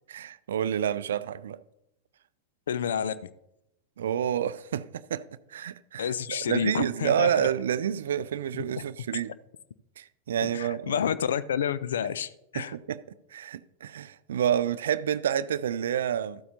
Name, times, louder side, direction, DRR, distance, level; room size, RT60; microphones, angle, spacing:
voice 1, 0.1-1.6 4.0-5.2 5.5-9.3 10.0-11.0 12.5-13.0 13.3-16.4, right 9 dB, 60° right, 0.4 m, -29 dB
voice 2, 2.7-3.1 6.0-7.5 8.5-8.8 9.1-9.2 10.4-12.7, left 8 dB, 65° left, 0.5 m, -29 dB
14.0 x 8.3 x 2.8 m
figure-of-eight pair, 90°, 0 cm